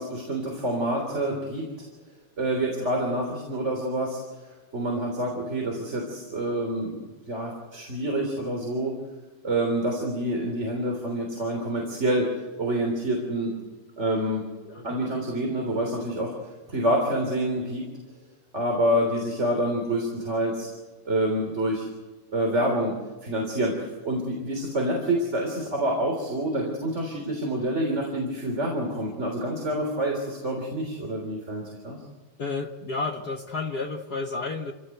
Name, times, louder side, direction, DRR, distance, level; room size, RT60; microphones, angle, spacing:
voice 1, 0.0-1.6 2.4-4.2 4.7-6.9 7.3-8.9 9.4-12.3 12.6-13.6 14.0-14.4 14.8-16.3 16.7-17.8 18.5-20.7 21.1-21.9 22.3-23.0 23.2-32.0, right 1 dB, 20° right, 1 dB, 3.5 m, -27 dB
voice 2, 14.6-15.2 32.4-34.7, left 3 dB, 60° left, 4 dB, 1.0 m, -32 dB
28.0 x 17.0 x 8.0 m, 1.3 s
omnidirectional pair, 3.5 m